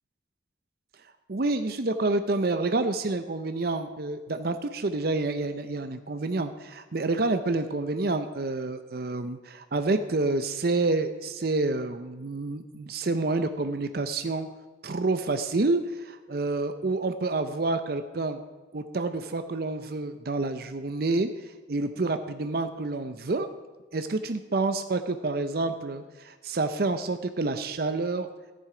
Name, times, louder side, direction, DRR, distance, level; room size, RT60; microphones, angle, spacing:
voice 1, 1.3-14.5 14.8-18.4 18.7-23.5 23.9-28.3, right 3 dB, 50° right, 9 dB, 0.6 m, -28 dB
14.0 x 10.5 x 4.9 m, 1.3 s
head